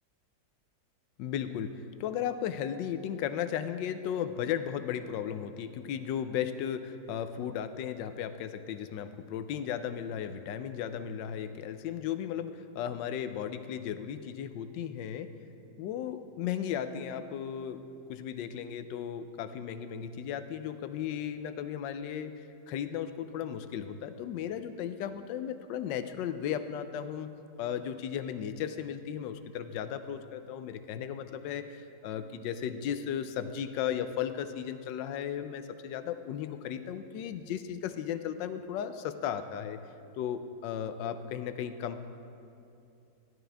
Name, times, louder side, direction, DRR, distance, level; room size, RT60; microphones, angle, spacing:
voice 1, 1.2-15.3 15.8-17.8 18.1-27.3 27.6-39.8 40.2-42.0, left 9 dB, 80° left, 10 dB, 1.2 m, -35 dB
12.5 x 11.0 x 3.4 m, 2.6 s
omnidirectional pair, 2.0 m